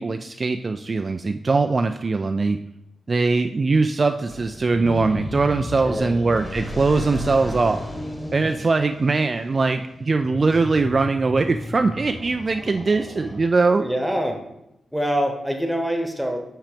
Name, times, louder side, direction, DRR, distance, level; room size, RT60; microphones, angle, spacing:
voice 1, 0.0-2.6 3.1-7.8 8.3-13.9, right 3 dB, 35° right, 7 dB, 0.3 m, -21 dB
sound 1, 4.3-13.8, left 1 dB, 20° left, 1.5 m, -34 dB
voice 2, 13.8-14.4 14.9-16.4, equal, ahead, 4 dB, 1.1 m, -24 dB
6.0 x 5.7 x 5.1 m, 0.85 s
wide cardioid pair, 105°, 0 cm